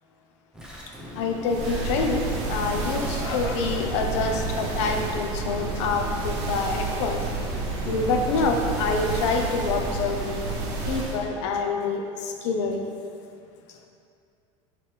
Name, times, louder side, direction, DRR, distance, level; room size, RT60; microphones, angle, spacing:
sound 1, 0.5-5.1 5.7-5.9 6.5-6.7 7.3-8.6, equal, 5° right, 0.6 m, -40 dB
voice 1, 1.1-2.2 2.5-7.2 7.8-10.5 10.9-12.9, left 4 dB, 90° left, 3 dB, 0.5 m, -26 dB
sound 2, 1.5-11.3, right 3 dB, 75° right, 0.8 m, -30 dB
4.2 x 2.9 x 3.3 m, 2.3 s
supercardioid pair, 130°, 15 cm